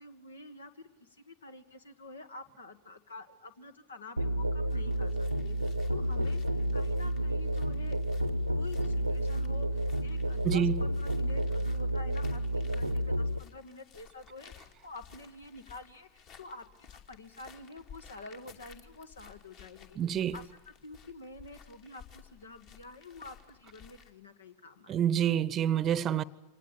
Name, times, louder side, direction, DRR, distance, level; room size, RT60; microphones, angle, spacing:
voice 1, 0.0-8.0 8.5-20.0 20.3-20.4 20.8-25.0, left 2 dB, 70° left, 2.0 m, -48 dB
Musical instrument, 4.2-13.4, right 1 dB, 90° right, 1.0 m, -30 dB
sound 1, 4.7-24.1, left 7 dB, 40° left, 2.7 m, -55 dB
voice 2, 10.4-10.8 20.0-20.4 24.9-26.2, right 9 dB, 30° right, 0.9 m, -27 dB
25.5 x 19.0 x 8.8 m
figure-of-eight pair, 90°, 0 cm